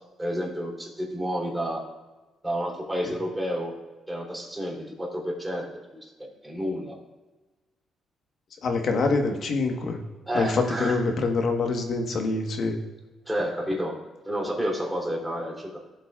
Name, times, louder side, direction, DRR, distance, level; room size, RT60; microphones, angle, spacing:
voice 1, 0.2-1.8 2.4-3.7 4.1-5.7 6.4-6.9 10.3-11.0 13.2-14.0 14.2-15.8, equal, 10° right, -2 dB, 3.2 m, -30 dB
voice 2, 8.6-10.0 10.3-12.7, left 3 dB, 60° left, 4 dB, 1.3 m, -25 dB
15.5 x 8.0 x 2.4 m, 1.2 s
cardioid pair, 90°, 0 cm